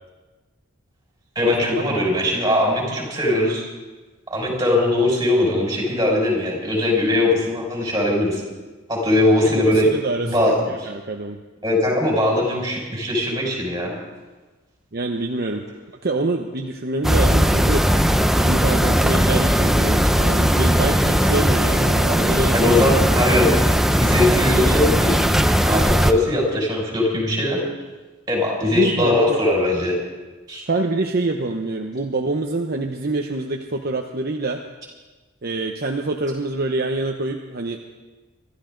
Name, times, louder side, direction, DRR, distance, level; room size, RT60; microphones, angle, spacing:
voice 1, 1.4-3.6 4.3-8.4 8.9-9.9 10.2-10.9 11.6-13.9 22.5-23.5 24.0-25.4 25.7-27.6 28.3-30.0 30.5-30.6, left 1 dB, 15° right, -2 dB, 5.8 m, -20 dB
voice 2, 9.9-10.3 10.7-11.4 14.9-15.6 16.0-17.8 18.4-22.8 28.7-29.4 30.7-34.6 35.4-37.9, right 2 dB, 45° right, 2 dB, 0.9 m, -25 dB
sound 1, 17.0-26.1, equal, ahead, 0.6 m, -18 dB
25.0 x 13.0 x 3.9 m, 1.2 s
head